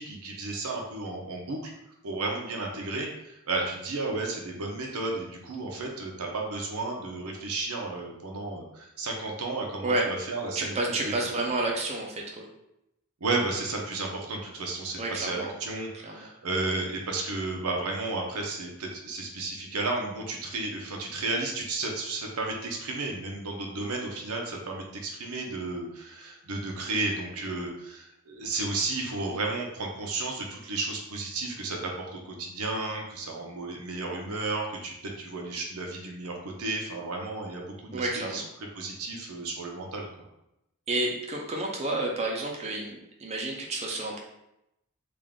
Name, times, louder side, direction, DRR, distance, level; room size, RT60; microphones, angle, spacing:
voice 1, 0.0-1.7 2.0-11.3 13.2-38.4 38.8-40.3, right 3 dB, 80° right, 0 dB, 0.7 m, -33 dB
voice 2, 10.6-12.5 14.9-15.5 16.0-16.3 37.9-38.5 40.9-44.2, right 2 dB, 30° right, -1 dB, 0.5 m, -30 dB
3.5 x 2.5 x 3.6 m, 0.86 s
head